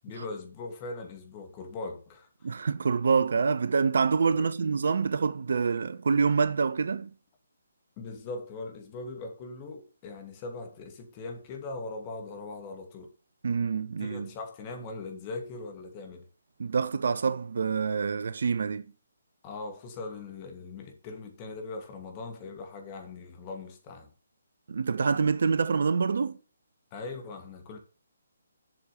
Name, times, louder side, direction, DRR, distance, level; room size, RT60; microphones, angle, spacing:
voice 1, 0.0-2.6 4.4-4.5 8.0-13.1 13.6-13.7 14.0-16.3 19.4-24.1 26.9-27.8, left 3 dB, 30° left, 2.5 m, -40 dB
voice 2, 2.4-7.1 13.4-14.3 16.6-18.9 24.7-26.4, right 5 dB, 60° right, 0.8 m, -26 dB
7.9 x 6.5 x 6.8 m
figure-of-eight pair, 145°, 0 cm